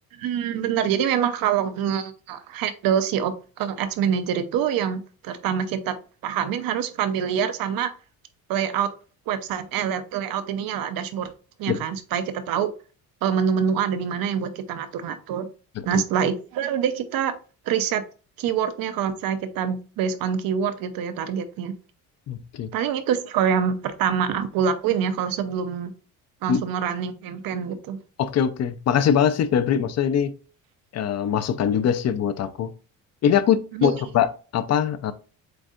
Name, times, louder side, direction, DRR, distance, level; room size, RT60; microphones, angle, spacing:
voice 1, 0.2-7.9 8.5-8.9 9.3-11.3 11.6-12.7 13.2-15.5 15.9-17.3 17.7-18.0 18.4-21.7 22.7-25.9 26.4-28.0 33.7-34.0, right 8 dB, 70° right, 10 dB, 0.8 m, -25 dB
voice 2, 22.3-22.7 26.5-26.6 28.2-30.3 30.9-32.7 33.2-35.1, left 8 dB, 45° left, 12 dB, 0.6 m, -22 dB
7.7 x 2.6 x 2.5 m, 0.36 s
cardioid pair, 120°, 36 cm